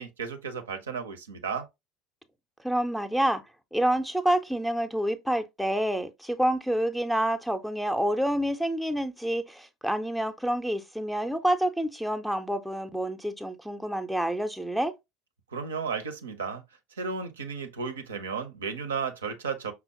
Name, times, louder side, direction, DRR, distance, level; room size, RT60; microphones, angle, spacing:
voice 1, 0.0-1.7 15.5-16.6 17.0-19.7, right 5 dB, 75° right, 0.5 m, -34 dB
voice 2, 2.6-3.4 3.7-14.9, right 1 dB, ahead, 0.5 m, -28 dB
5.4 x 2.0 x 2.7 m
figure-of-eight pair, 70°, 0 cm